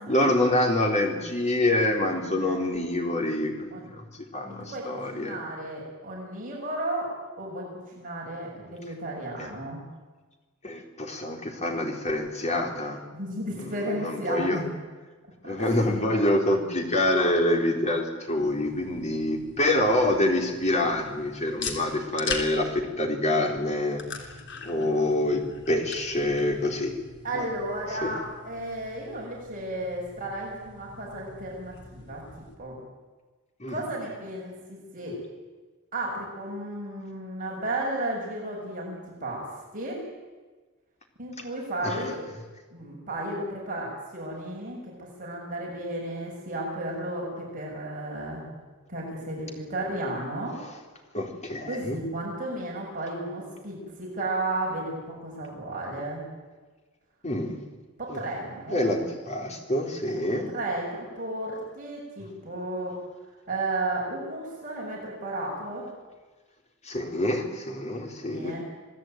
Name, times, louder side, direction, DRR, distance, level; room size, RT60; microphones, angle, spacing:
voice 1, 0.1-5.4 9.4-9.5 10.6-13.0 13.5-14.6 15.4-24.3 24.6-26.9 27.3-27.5 28.0-28.1 33.6-33.8 41.8-42.1 50.6-50.7 51.1-52.0 57.2-57.6 58.1-58.2 58.7-60.5 66.8-68.6, left 1 dB, 35° left, 2 dB, 4.1 m, -26 dB
voice 2, 4.6-7.1 7.4-9.8 13.1-14.7 15.4-15.7 27.2-32.2 32.6-32.8 33.7-35.2 35.9-39.5 39.7-40.0 41.2-42.2 42.7-48.5 48.9-50.6 51.7-56.2 58.0-58.9 60.1-62.9 63.5-65.9 68.3-68.6, right 1 dB, 40° right, -2 dB, 7.1 m, -33 dB
sound 1, 18.3-32.5, left 5 dB, 60° left, 3.3 m, -42 dB
28.0 x 18.0 x 9.4 m, 1.3 s
head